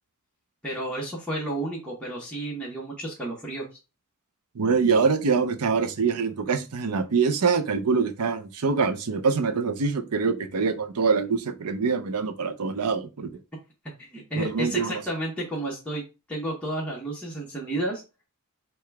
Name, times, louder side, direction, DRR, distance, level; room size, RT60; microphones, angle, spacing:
voice 1, 0.6-3.7 14.0-16.0 16.3-18.0, right 1 dB, 5° left, 1.0 m, -31 dB
voice 2, 4.5-13.3 14.4-15.0, right 5 dB, 90° right, 0.6 m, -24 dB
4.7 x 2.3 x 3.4 m
head